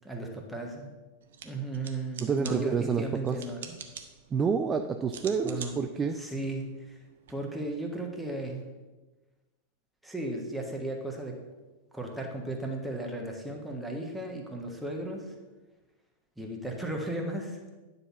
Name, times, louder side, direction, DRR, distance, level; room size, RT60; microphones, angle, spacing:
voice 1, 0.0-0.9 1.4-3.7 5.4-5.8 6.1-7.0 7.3-8.6 10.0-11.4 11.9-15.3 16.4-17.6, right 2 dB, ahead, 0 dB, 1.4 m, -35 dB
sound 1, 1.2-7.3, right 7 dB, 60° right, 0.8 m, -47 dB
voice 2, 2.2-3.4 4.3-6.2, right 6 dB, 20° right, 6 dB, 0.4 m, -28 dB
9.8 x 4.0 x 5.9 m, 1.2 s
figure-of-eight pair, 90°, 0 cm